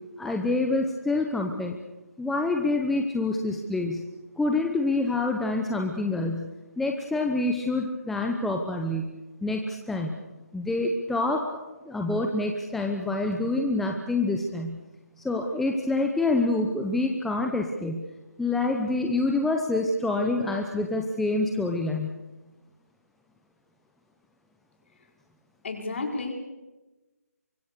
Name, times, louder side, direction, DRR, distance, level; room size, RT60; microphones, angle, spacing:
voice 1, 0.2-1.8 2.2-4.0 4.4-6.5 6.8-9.1 9.4-10.1 10.5-11.4 11.8-14.8 15.2-18.0 18.4-22.1, left 2 dB, ahead, 2 dB, 0.9 m, -26 dB
voice 2, 25.6-26.3, left 3 dB, 45° left, 3 dB, 5.0 m, -31 dB
24.5 x 22.0 x 6.8 m, 1.1 s
figure-of-eight pair, 160°, 9 cm